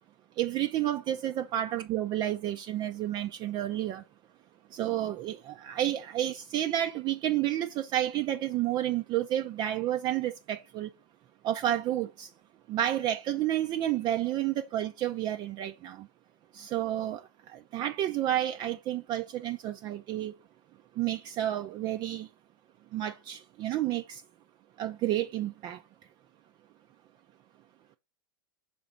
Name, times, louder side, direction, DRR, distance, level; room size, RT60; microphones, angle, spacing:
voice 1, 0.4-4.0 4.7-10.9 11.4-12.3 12.7-16.1 16.5-20.3 21.0-22.3 22.9-24.2 24.8-25.8, right 12 dB, 35° right, 0.5 m, -30 dB
5.8 x 4.2 x 5.1 m
hypercardioid pair, 100°, 12 cm